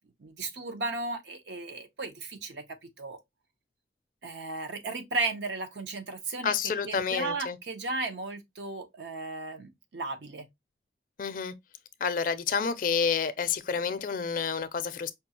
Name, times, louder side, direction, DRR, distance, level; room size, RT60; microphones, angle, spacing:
voice 1, 0.2-2.6 3.0-3.2 4.2-10.5, right 3 dB, 80° right, 0.8 m, -35 dB
voice 2, 6.4-7.6 11.2-11.5 12.0-15.1, left 6 dB, 50° left, 0.4 m, -29 dB
5.2 x 2.3 x 2.8 m
head